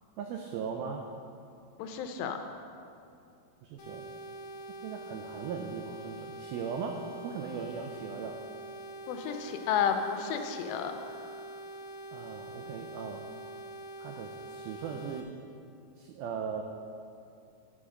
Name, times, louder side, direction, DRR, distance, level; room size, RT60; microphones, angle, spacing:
voice 1, 0.2-1.0 3.6-4.1 4.8-8.4 12.1-13.2 14.0-15.3 16.0-16.6, right 6 dB, 90° right, 3 dB, 2.1 m, -38 dB
voice 2, 1.8-2.4 9.1-10.9, left 7 dB, 80° left, 6 dB, 2.8 m, -31 dB
sound 1, 3.8-15.2, right 1 dB, 55° left, 1.6 m, -45 dB
11.0 x 6.1 x 6.5 m, 2.5 s
omnidirectional pair, 5.0 m